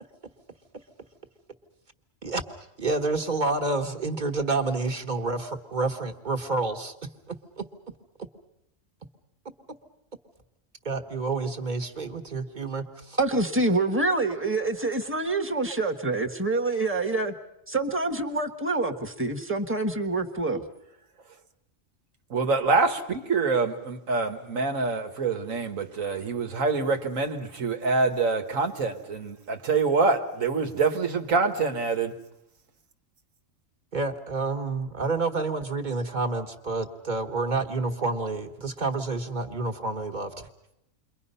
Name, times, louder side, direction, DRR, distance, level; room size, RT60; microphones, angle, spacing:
voice 1, 2.8-6.9 7.3-7.7 10.8-13.2 33.9-40.3, right 3 dB, 35° right, 5 dB, 1.6 m, -29 dB
voice 2, 13.2-17.3 17.7-20.6, right 2 dB, 10° right, 3 dB, 1.3 m, -26 dB
voice 3, 22.3-32.1, right 4 dB, 85° right, 6 dB, 1.9 m, -25 dB
29.0 x 23.0 x 5.6 m, 0.83 s
omnidirectional pair, 1.3 m